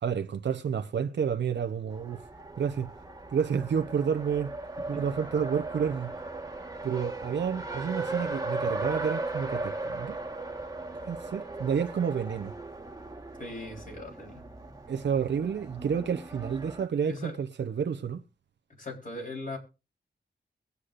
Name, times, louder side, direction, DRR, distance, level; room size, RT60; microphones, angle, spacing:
voice 1, 0.0-2.2 2.6-2.9 3.3-4.5 4.9-6.1 6.8-10.2 11.1-12.5 14.9-18.2, right 7 dB, 75° right, 0.7 m, -30 dB
Race car auto racing, 1.9-16.9, right 2 dB, 20° right, 1.4 m, -37 dB
voice 2, 13.4-14.4 17.1-17.4 18.8-19.6, left 2 dB, 45° left, 3.6 m, -39 dB
21.5 x 8.3 x 2.5 m
wide cardioid pair, 120°, 18 cm